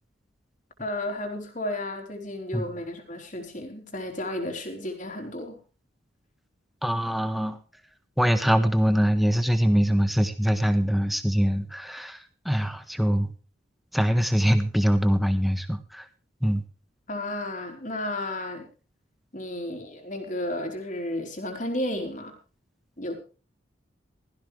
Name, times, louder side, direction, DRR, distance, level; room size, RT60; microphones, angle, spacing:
voice 1, 0.8-5.6 17.1-18.7 19.3-22.3 23.0-23.2, left 1 dB, 40° left, 3 dB, 3.8 m, -33 dB
voice 2, 6.8-7.6 8.2-13.3 13.9-16.0 16.4-16.6, equal, ahead, 9 dB, 1.4 m, -23 dB
17.0 x 15.0 x 3.4 m, 0.35 s
head